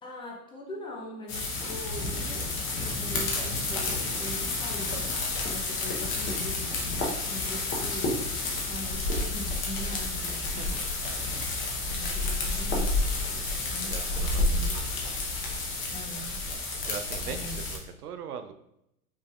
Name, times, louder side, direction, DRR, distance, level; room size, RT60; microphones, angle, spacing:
voice 1, 0.0-2.5 2.8-5.2 5.5-8.3 8.7-10.7 11.8-12.9 13.6-14.8 15.9-16.4 17.2-17.9, left 1 dB, 10° left, -1 dB, 0.5 m, -42 dB
sound 1, 1.3-17.8, left 2 dB, 30° left, 1.0 m, -30 dB
sound 2, 2.5-16.0, left 6 dB, 60° left, 0.6 m, -46 dB
voice 2, 10.5-11.0 13.1-14.9 16.8-18.5, right 7 dB, 85° right, 8 dB, 0.6 m, -42 dB
5.5 x 3.3 x 2.4 m, 0.81 s
hypercardioid pair, 125°, 44 cm